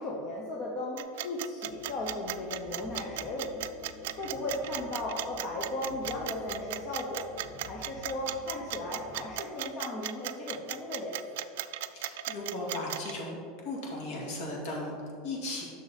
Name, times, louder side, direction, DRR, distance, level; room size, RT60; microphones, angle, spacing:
voice 1, 0.0-3.7 4.2-7.3 7.7-11.4, left 2 dB, 30° left, -3 dB, 1.0 m, -36 dB
sound 1, 1.0-13.1, right 14 dB, 70° right, 0.4 m, -36 dB
sound 2, 1.6-9.2, left 2 dB, 85° left, 2.3 m, -50 dB
voice 2, 11.9-15.6, left 1 dB, 55° left, -2 dB, 2.3 m, -37 dB
10.0 x 6.4 x 4.2 m, 2.3 s
supercardioid pair, 175°, 0 cm